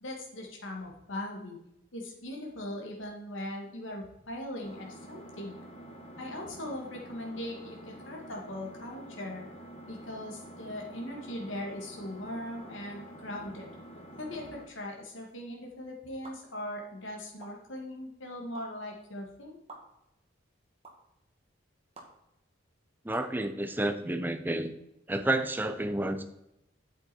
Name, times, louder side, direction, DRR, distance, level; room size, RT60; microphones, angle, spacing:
voice 1, 0.0-1.6 1.9-5.6 6.2-9.4 9.9-13.7 14.2-19.6, left 1 dB, 80° left, 0 dB, 2.3 m, -40 dB
Engine, 4.6-14.6, right 1 dB, 30° left, 1.7 m, -48 dB
sound 1, 16.2-16.3 17.4-17.5 18.5-18.6 19.7-19.8 20.8-20.9 21.9-22.1 23.1-23.3, right 3 dB, 30° right, 2.1 m, -47 dB
voice 2, 23.0-24.7 25.1-26.2, right 1 dB, 10° right, 9 dB, 0.7 m, -30 dB
8.7 x 8.1 x 4.4 m, 0.84 s
head